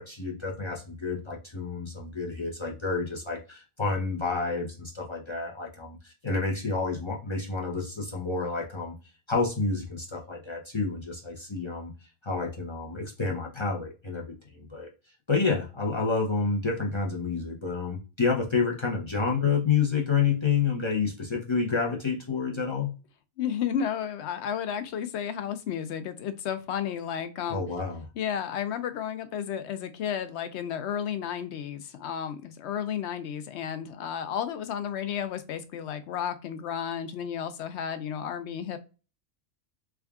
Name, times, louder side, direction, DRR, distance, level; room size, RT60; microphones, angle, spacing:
voice 1, 0.0-9.0 9.3-11.9 12.2-14.2 14.5-14.9 15.3-22.9 27.5-28.0, left 4 dB, 40° left, -1 dB, 0.4 m, -29 dB
voice 2, 23.4-27.6 28.2-38.8, left 8 dB, 65° left, 11 dB, 0.8 m, -32 dB
3.5 x 2.3 x 3.4 m, 0.31 s
omnidirectional pair, 1.3 m